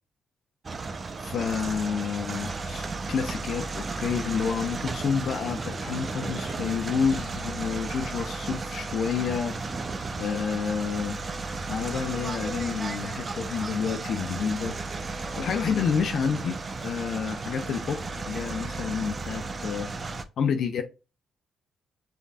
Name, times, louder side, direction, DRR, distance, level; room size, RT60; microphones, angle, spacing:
sound 1, 0.6-20.2, right 3 dB, 40° right, 0.7 m, -34 dB
voice 1, 1.2-9.6 10.2-11.2 11.7-14.8 15.4-16.6 16.8-18.0 18.3-19.9 20.4-20.8, left 6 dB, 70° left, 0.7 m, -29 dB
5.1 x 3.9 x 2.4 m
supercardioid pair, 55°, 0 cm